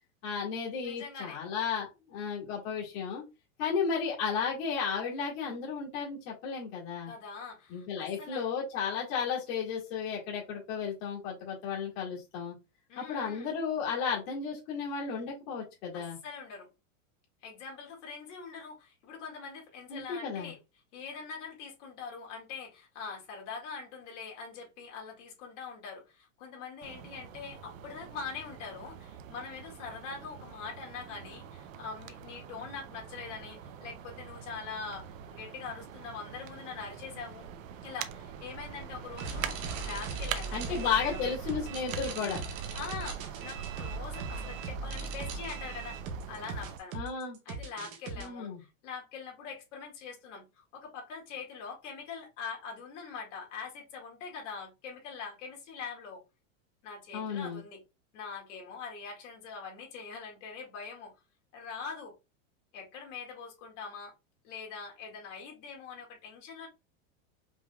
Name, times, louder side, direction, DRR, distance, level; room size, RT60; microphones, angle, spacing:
voice 1, 0.2-3.2 3.6-7.1 7.7-12.5 13.0-16.2 19.9-20.5 40.5-42.4 46.9-47.4 48.2-48.6 57.1-57.6, left 6 dB, 45° left, 2.0 m, -33 dB
voice 2, 0.8-1.4 7.0-8.5 12.9-13.5 15.9-16.7 17.4-20.6 20.9-37.5 37.8-41.3 42.7-46.0 46.3-47.0 47.5-56.2 56.8-57.8 58.1-61.1 61.5-62.1 62.7-64.1 64.4-66.7, left 5 dB, 65° left, 2.2 m, -43 dB
sound 1, 26.8-46.8, right 8 dB, 80° right, 0.8 m, -44 dB
sound 2, 39.2-48.3, right 4 dB, 20° right, 0.4 m, -39 dB
5.2 x 3.5 x 2.3 m
supercardioid pair, 170°, 40 cm